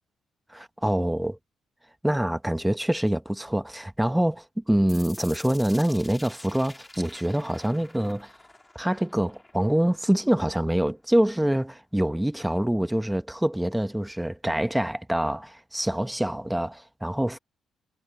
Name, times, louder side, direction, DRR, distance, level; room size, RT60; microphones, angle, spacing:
voice 1, 0.5-1.4 2.0-8.3 8.7-17.4, right 1 dB, 5° right, 1.8 m, -25 dB
sound 1, 4.9-10.9, left 2 dB, 15° left, 5.5 m, -48 dB
figure-of-eight pair, 40°, 0 cm